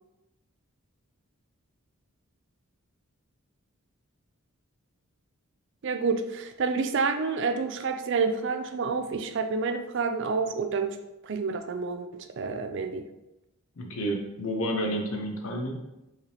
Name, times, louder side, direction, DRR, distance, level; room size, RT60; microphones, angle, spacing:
voice 1, 5.8-11.0 11.2-12.1 12.4-13.0, right 4 dB, 55° right, 7 dB, 0.4 m, -28 dB
voice 2, 13.8-15.8, equal, 70° left, 2 dB, 0.6 m, -30 dB
4.7 x 3.3 x 2.9 m, 0.95 s
head